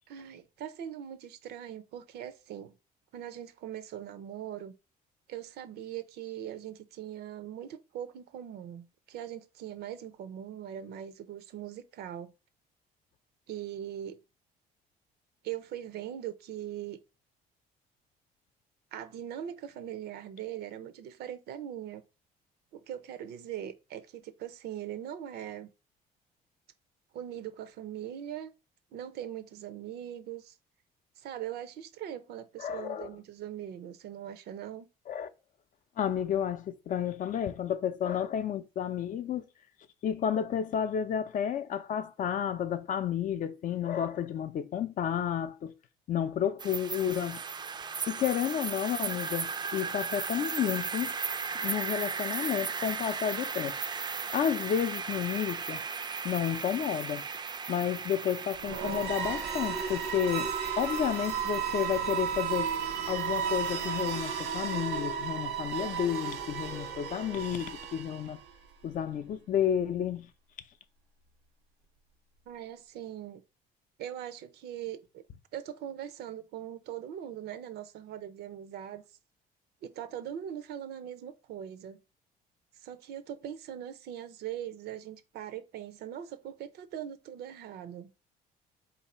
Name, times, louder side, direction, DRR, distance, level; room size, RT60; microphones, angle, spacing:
voice 1, 0.1-2.7 3.1-4.7 5.3-12.3 13.5-14.2 15.4-17.0 18.9-22.0 22.7-25.7 27.1-28.5 28.9-30.6 31.2-34.9 72.5-73.4 74.0-75.2 75.5-79.0 79.8-82.0 82.8-88.1, right 10 dB, 75° right, 0.6 m, -41 dB
voice 2, 32.6-33.1 35.1-35.3 36.0-39.4 40.0-45.7 46.1-47.4 48.1-51.1 51.6-53.8 54.3-55.8 56.2-57.3 57.7-62.7 63.1-68.4 68.8-70.3, left 9 dB, 50° left, 0.5 m, -31 dB
sound 1, 46.6-64.1, right 5 dB, 25° right, 0.4 m, -37 dB
sound 2, 58.6-68.5, right 7 dB, 90° right, 1.2 m, -34 dB
4.0 x 2.7 x 4.2 m
cardioid pair, 110°, 17 cm